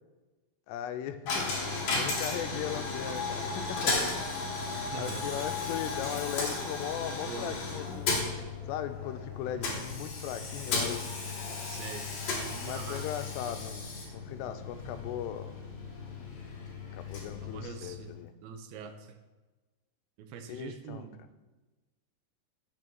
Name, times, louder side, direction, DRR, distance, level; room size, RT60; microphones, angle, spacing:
voice 1, 0.7-1.5 1.9-4.2 4.7-8.1 8.7-11.2 12.6-15.5 16.9-18.3 20.5-21.1, left 10 dB, 90° left, 10 dB, 2.7 m, -38 dB
Coin (dropping), 1.3-18.2, left 3 dB, 55° left, 2.3 m, -35 dB
voice 2, 4.7-5.5 7.2-7.6 11.6-12.1 12.3-13.1 17.4-18.1 18.4-19.1 20.2-21.2, right 6 dB, 80° right, 6 dB, 2.3 m, -43 dB
8.4 x 6.9 x 4.6 m, 1.2 s
omnidirectional pair, 4.8 m